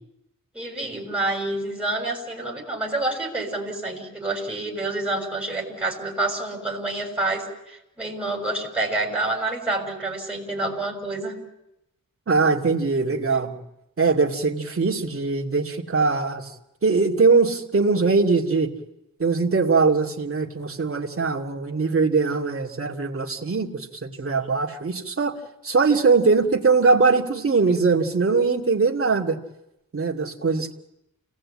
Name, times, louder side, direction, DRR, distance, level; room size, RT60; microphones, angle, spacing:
voice 1, 0.5-11.3, right 2 dB, 5° right, -1 dB, 6.5 m, -28 dB
voice 2, 12.3-13.6 14.0-16.5 16.8-18.7 19.2-25.4 25.6-29.4 29.9-30.7, right 4 dB, 40° right, -1 dB, 2.5 m, -21 dB
29.0 x 18.5 x 8.8 m, 0.88 s
wide cardioid pair, 165°, 34 cm